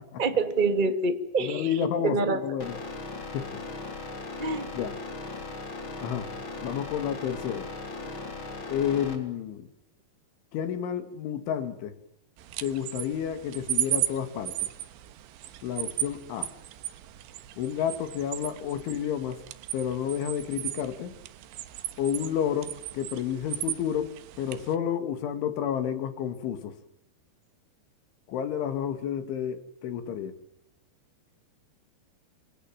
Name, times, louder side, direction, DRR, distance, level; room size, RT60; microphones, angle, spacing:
voice 1, 0.2-2.4 4.4-4.7, right 3 dB, 50° right, 8 dB, 0.5 m, -26 dB
voice 2, 1.4-2.8 3.3-3.6 4.7-5.0 6.0-6.3 6.6-7.7 8.7-9.7 10.5-12.0 12.6-14.7 15.6-16.5 17.6-19.4 19.7-21.1 22.0-26.8 28.3-30.4, left 9 dB, 85° left, 10 dB, 4.7 m, -30 dB
sound 1, 2.6-9.1, left 3 dB, 30° left, 3.7 m, -38 dB
sound 2, 12.4-24.8, right 13 dB, 75° right, 3.4 m, -36 dB
27.0 x 27.0 x 7.3 m, 0.77 s
omnidirectional pair, 5.3 m